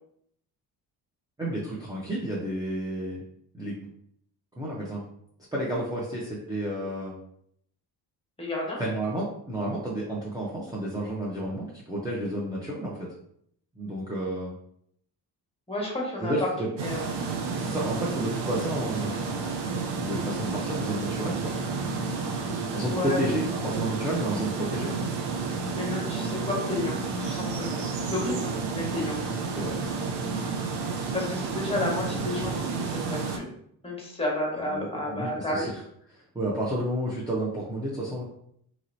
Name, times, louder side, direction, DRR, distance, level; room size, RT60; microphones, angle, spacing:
voice 1, 1.4-3.2 3.5-3.9 4.6-5.0 5.5-7.2 8.8-13.1 13.8-14.5 16.2-16.7 17.6-19.3 19.9-21.5 22.7-24.9 29.5-29.7 34.5-35.7 36.1-38.2, right 1 dB, 10° right, -6 dB, 0.7 m, -31 dB
voice 2, 8.4-8.8 15.7-16.5 16.8-17.1 22.8-23.3 25.8-29.2 31.1-33.5 33.8-35.7, left 2 dB, 15° left, -2 dB, 1.2 m, -31 dB
sound 1, 16.8-33.4, right 4 dB, 70° right, 0.7 m, -31 dB
3.0 x 2.8 x 2.7 m, 0.70 s
cardioid pair, 85°, 43 cm